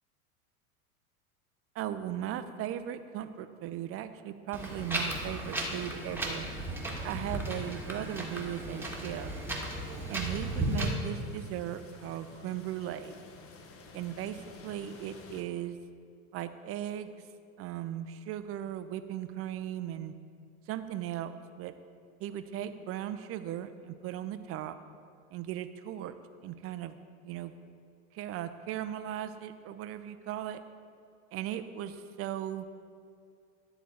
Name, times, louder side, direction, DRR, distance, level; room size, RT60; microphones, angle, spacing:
voice 1, 1.8-6.5 7.0-9.3 10.1-13.2 13.9-15.8 16.3-17.1 17.6-20.1 20.7-21.7 22.2-24.8 25.3-26.1 26.4-27.5 28.1-30.6 31.3-32.6, right 11 dB, 30° right, 10 dB, 0.5 m, -37 dB
Wind, 4.5-10.9, right 1 dB, 5° right, 1.4 m, -35 dB
sound 1, 8.1-15.4, left 4 dB, 30° left, 1.0 m, -52 dB
10.5 x 4.0 x 7.1 m, 2.3 s
hypercardioid pair, 95°, 46 cm